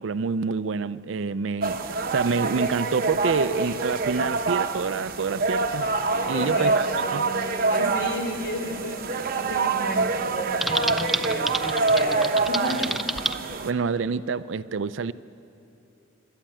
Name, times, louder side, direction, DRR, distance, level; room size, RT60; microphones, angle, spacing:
voice 1, 0.0-5.9 6.3-6.9 7.1-7.3 13.6-15.1, right 5 dB, 60° right, 0.4 m, -27 dB
sound 1, 1.6-13.7, right 3 dB, 45° right, 0.8 m, -26 dB
Bowed string instrument, 5.8-10.8, right 1 dB, 15° left, 5.4 m, -44 dB
voice 2, 6.2-6.9 7.7-12.9, equal, 55° left, 3.2 m, -33 dB
Typing, 10.6-13.4, right 1 dB, ahead, 0.4 m, -29 dB
25.0 x 12.0 x 8.7 m
head